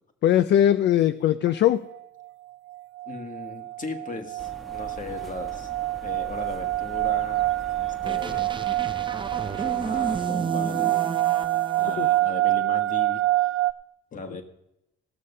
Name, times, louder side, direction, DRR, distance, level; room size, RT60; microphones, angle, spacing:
voice 1, 0.2-1.9 12.0-12.1, left 11 dB, 65° left, 12 dB, 0.4 m, -20 dB
sound 1, 1.5-1.6 1.9-2.3 2.7-13.7, right 17 dB, 80° right, 0.5 m, -27 dB
voice 2, 3.1-5.7 6.0-8.5 9.4-11.0 11.8-13.6 14.1-14.4, left 3 dB, 40° left, 5 dB, 1.8 m, -38 dB
sound 2, 4.4-10.3, right 1 dB, ahead, 1.5 m, -44 dB
sound 3, 8.0-12.2, right 4 dB, 25° right, 0.6 m, -32 dB
17.0 x 6.5 x 5.5 m, 0.84 s
cardioid pair, 90°, 20 cm